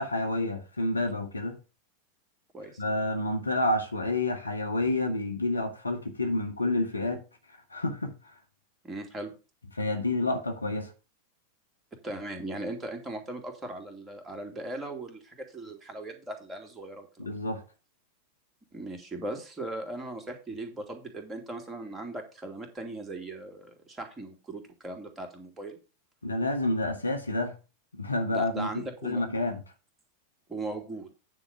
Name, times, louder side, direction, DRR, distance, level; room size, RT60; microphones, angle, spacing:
voice 1, 0.0-1.6 2.8-7.2 7.7-8.1 9.7-10.9 17.2-17.6 26.2-27.6 27.9-29.6, left 2 dB, 80° left, 1.5 m, -29 dB
voice 2, 8.8-9.3 12.0-17.3 18.7-25.8 28.3-29.2 30.5-31.1, right 2 dB, 15° right, 2.7 m, -38 dB
9.6 x 4.0 x 6.6 m
figure-of-eight pair, 90°, 0 cm